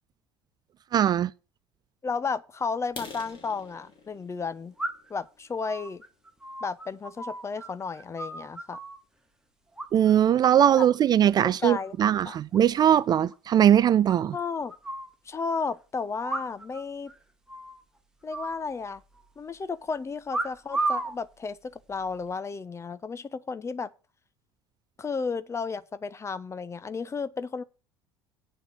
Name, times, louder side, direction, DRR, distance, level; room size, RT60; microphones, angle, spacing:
voice 1, 0.9-1.3 9.9-14.3, right 10 dB, 30° right, 0.4 m, -20 dB
voice 2, 2.0-4.7 5.1-6.0 6.6-8.8 10.8-10.9 11.6-12.4 14.3-14.7 15.3-17.1 18.2-19.0 19.4-23.9 25.0-27.6, left 5 dB, 20° left, 0.8 m, -33 dB
sound 1, 2.8-6.6 7.1-7.3 7.8-7.9 8.3-8.5 8.8-8.9 9.3-9.4 9.7-10.2, left 4 dB, 40° left, 2.6 m, -47 dB
sound 2, 4.8-5.2 5.6-7.7 7.9-9.0 9.8-10.3 10.6-11.0 11.3-11.9 12.2-12.3 12.5-12.6 12.9-13.0 13.3-13.4 14.1-15.1 16.2-16.8 17.1-17.2 17.5-17.8 18.3-19.2 20.3-21.2 21.9-22.3, right 2 dB, 5° right, 1.6 m, -34 dB
9.0 x 6.8 x 5.9 m
figure-of-eight pair, 65°, 13 cm